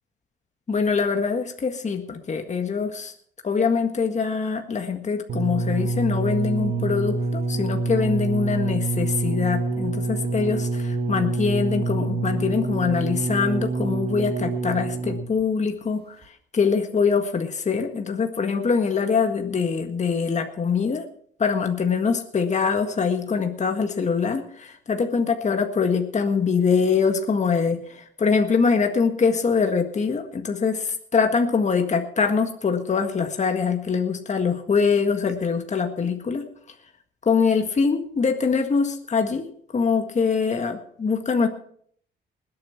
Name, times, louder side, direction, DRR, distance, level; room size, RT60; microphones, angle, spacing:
voice 1, 0.7-3.1 3.4-16.2 16.5-21.0 21.4-36.4 37.2-39.5 39.7-41.5, left 5 dB, 35° left, 5 dB, 1.7 m, -23 dB
sound 1, 5.3-15.4 16.2-16.3, right 3 dB, 55° right, 1.8 m, -26 dB
20.0 x 8.7 x 5.9 m, 0.62 s
cardioid pair, 90°, 20 cm